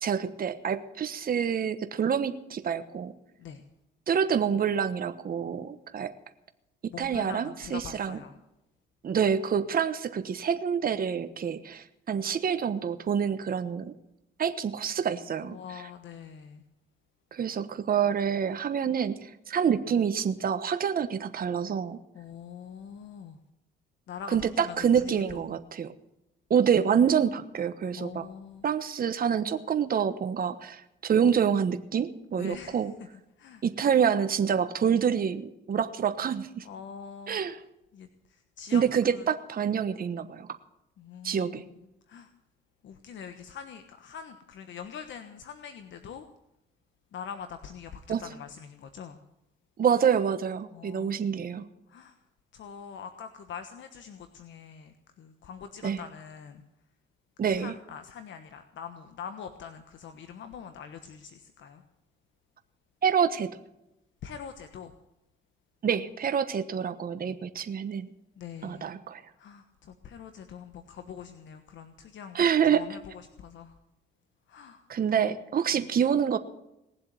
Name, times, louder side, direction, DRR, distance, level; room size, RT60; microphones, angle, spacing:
voice 1, 0.0-3.1 4.1-6.1 7.0-8.2 9.0-13.9 14.4-15.8 17.3-22.0 24.3-25.9 26.5-28.3 28.6-32.9 33.6-36.6 37.3-37.6 38.7-40.5 41.2-41.6 48.1-48.2 49.8-51.7 55.8-56.0 57.4-57.7 63.0-63.5 65.8-68.1 68.6-69.2 72.3-72.8 74.9-76.4, right 7 dB, 45° right, 9 dB, 1.2 m, -27 dB
voice 2, 6.9-8.4 15.5-16.6 22.1-23.4 24.1-25.5 28.0-28.7 32.3-32.8 33.4-33.6 36.6-37.4 37.9-39.3 41.0-41.7 42.1-42.3 42.8-46.3 47.1-49.2 50.7-51.2 51.5-51.6 51.9-52.2 52.5-56.6 57.5-61.8 64.2-64.9 68.4-68.9 69.3-73.0 73.4-73.8 74.5-75.3 75.7-75.9, left 7 dB, 70° left, 8 dB, 1.3 m, -44 dB
19.5 x 7.6 x 9.3 m, 0.87 s
cardioid pair, 90°, 20 cm